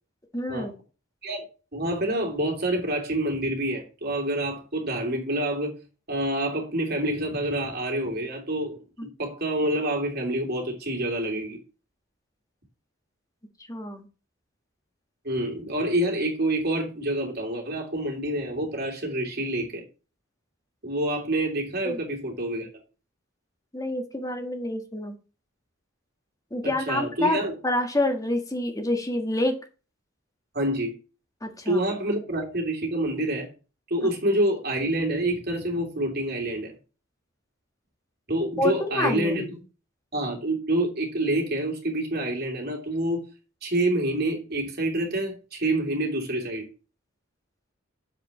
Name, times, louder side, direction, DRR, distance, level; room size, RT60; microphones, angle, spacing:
voice 1, 0.3-0.7 9.0-9.1 13.7-14.1 21.8-22.0 23.7-25.1 26.5-27.4 27.6-29.5 31.4-31.8 38.6-39.5, left 1 dB, 15° left, 1.5 m, -27 dB
voice 2, 1.7-5.7 6.1-8.8 9.2-11.6 15.2-19.8 20.8-22.7 26.6-27.5 30.5-30.9 31.6-33.5 33.9-36.7 38.3-39.4 40.1-43.3 43.6-46.7, right 1 dB, 50° right, 3.1 m, -27 dB
7.6 x 5.0 x 6.1 m
head